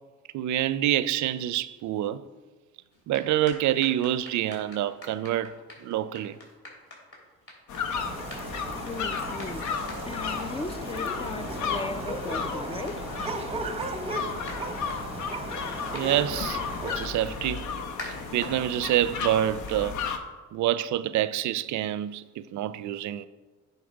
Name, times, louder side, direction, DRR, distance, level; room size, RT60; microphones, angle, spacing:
voice 1, 0.3-2.2 3.1-5.5 5.8-6.4 15.9-17.6 18.3-20.0 20.5-23.3, right 12 dB, 70° right, 0.5 m, -27 dB
sound 1, 2.9-20.6, left 1 dB, 50° left, 2.8 m, -48 dB
sound 2, 7.7-20.2, left 5 dB, 75° left, 0.8 m, -34 dB
sound 3, 7.9-17.1, right 3 dB, 20° right, 0.7 m, -36 dB
voice 2, 8.7-9.7 10.0-13.1, left 3 dB, 20° left, 0.3 m, -37 dB
10.5 x 4.1 x 5.0 m
cardioid pair, 90°, 30 cm